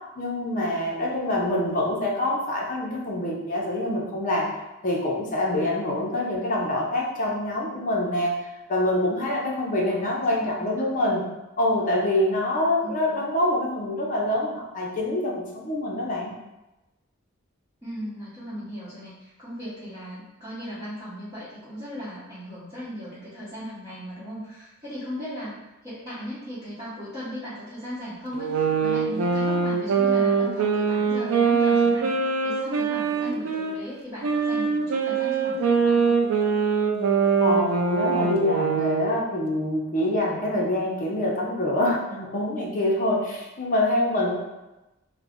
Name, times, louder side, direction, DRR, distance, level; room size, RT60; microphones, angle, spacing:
voice 1, 0.2-4.5 4.8-8.3 8.7-11.2 11.6-16.3 37.4-44.4, left 1 dB, 40° left, -2 dB, 0.5 m, -25 dB
voice 2, 9.8-10.7 12.8-13.2 17.8-36.2, equal, 20° right, -13 dB, 0.8 m, -37 dB
sound 1, 28.3-33.7 34.2-39.1, right 5 dB, 80° right, 0.4 m, -23 dB
2.4 x 2.0 x 3.4 m, 1.0 s
head